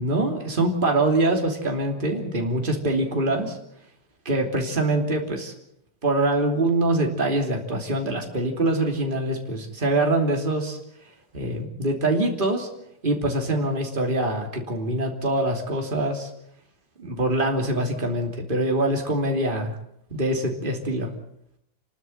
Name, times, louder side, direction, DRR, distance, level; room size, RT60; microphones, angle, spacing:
voice 1, 0.0-3.6 4.2-5.5 6.0-10.8 11.3-12.7 13.0-16.3 17.0-19.8 20.1-21.1, right 2 dB, 30° right, 2 dB, 3.2 m, -24 dB
29.5 x 12.5 x 9.2 m, 0.76 s
omnidirectional pair, 1.7 m